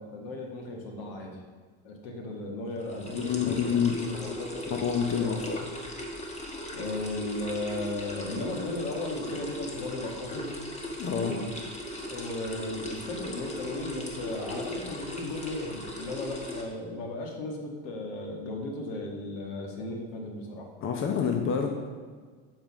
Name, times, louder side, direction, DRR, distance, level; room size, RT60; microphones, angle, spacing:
voice 1, 0.1-1.4 1.8-3.7 4.0-4.7 5.1-5.4 6.7-10.5 11.2-11.5 12.1-20.7, left 2 dB, 75° left, 1 dB, 1.9 m, -36 dB
sound 1, 2.8-16.6, left 1 dB, 20° left, 1.7 m, -38 dB
voice 2, 3.1-4.0 4.7-5.6 11.0-11.3 20.8-21.7, left 7 dB, 45° left, 3 dB, 1.0 m, -27 dB
7.3 x 5.5 x 6.2 m, 1.5 s
supercardioid pair, 105°, 30 cm